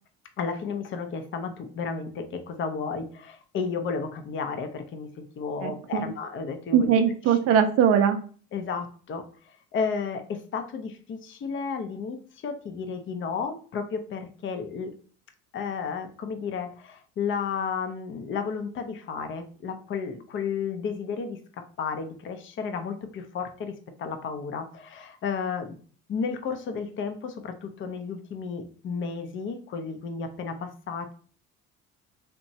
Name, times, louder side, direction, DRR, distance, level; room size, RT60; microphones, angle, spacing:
voice 1, 0.4-6.9 7.3-7.4 8.5-12.2 12.4-14.9 15.5-21.4 21.8-25.8 26.1-31.1, left 5 dB, 40° left, 7 dB, 0.5 m, -32 dB
voice 2, 5.6-6.1 6.7-8.2, right 8 dB, 50° right, 6 dB, 0.4 m, -21 dB
2.9 x 2.2 x 2.6 m, 0.43 s
supercardioid pair, 80°, 32 cm